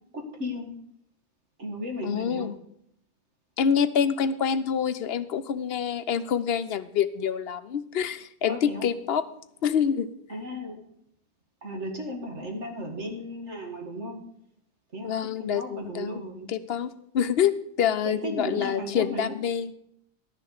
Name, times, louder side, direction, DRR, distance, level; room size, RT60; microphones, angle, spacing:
voice 1, 0.1-0.7 1.6-2.5 8.5-8.9 10.3-10.8 11.6-14.2 14.9-15.1 15.4-16.5 18.1-19.3, equal, 85° right, 2 dB, 2.2 m, -35 dB
voice 2, 2.0-2.5 3.6-9.2 9.6-10.1 15.0-16.2 16.5-19.7, left 8 dB, 65° left, 12 dB, 0.8 m, -26 dB
11.5 x 6.9 x 6.5 m, 0.71 s
omnidirectional pair, 1.2 m